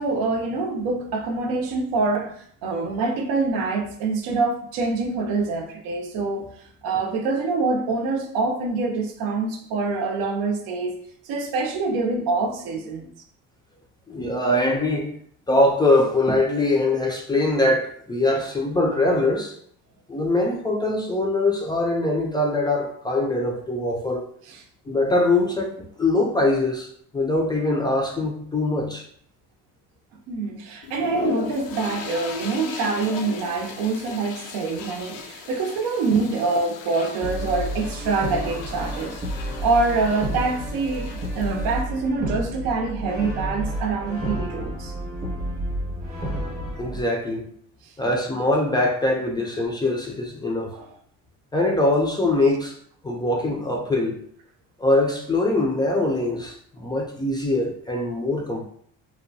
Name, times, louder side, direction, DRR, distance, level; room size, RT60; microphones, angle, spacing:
voice 1, 0.0-2.3 2.6-6.5 6.8-11.0 11.2-13.1 24.5-24.6 30.3-39.2 39.6-44.9 50.7-50.9, right 3 dB, 90° right, 0.6 m, -25 dB
voice 2, 14.1-15.1 15.5-19.5 20.1-24.3 24.9-26.9 27.1-29.0 46.8-47.5 48.0-50.7 51.5-52.7 53.0-54.2 54.8-58.6, left 2 dB, 15° left, 0.3 m, -22 dB
sound 1, 30.8-41.8, left 5 dB, 70° left, 0.5 m, -37 dB
Brass instrument, 37.2-47.0, equal, 25° right, 0.7 m, -30 dB
2.8 x 2.1 x 2.6 m
cardioid pair, 130°, 34 cm